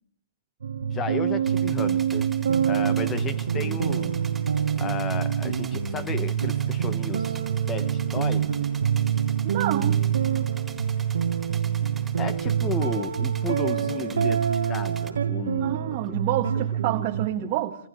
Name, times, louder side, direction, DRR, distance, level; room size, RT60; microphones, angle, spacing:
sound 1, 0.6-17.3, right 8 dB, 75° right, 1.5 m, -26 dB
voice 1, 0.9-2.3 2.7-4.2 4.8-7.4 7.7-8.5 12.2-16.2 16.8-17.1 17.4-17.5, left 5 dB, 20° left, 1.5 m, -34 dB
sound 2, 1.5-15.1, right 5 dB, 5° right, 4.0 m, -46 dB
voice 2, 9.4-10.1 15.6-17.8, right 14 dB, 35° right, 1.7 m, -28 dB
28.5 x 28.5 x 3.3 m
hypercardioid pair, 140°, 0 cm